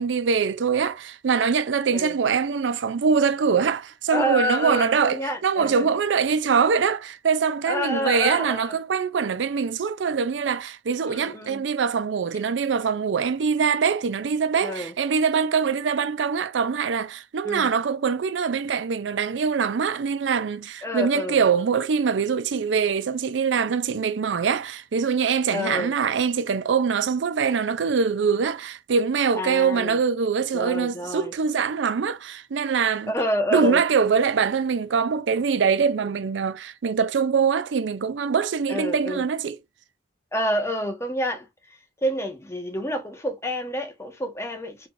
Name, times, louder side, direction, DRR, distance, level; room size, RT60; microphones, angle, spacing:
voice 1, 0.0-33.1 33.5-39.6, right 6 dB, 90° right, 0.4 m, -23 dB
voice 2, 4.1-5.9 7.7-8.7 11.0-11.6 14.6-14.9 17.4-17.7 20.8-21.4 25.5-25.9 29.4-30.0 30.5-31.3 33.1-33.8 38.7-39.2 40.3-41.5 42.0-44.9, equal, 15° left, 1.1 m, -28 dB
4.3 x 3.3 x 2.5 m
head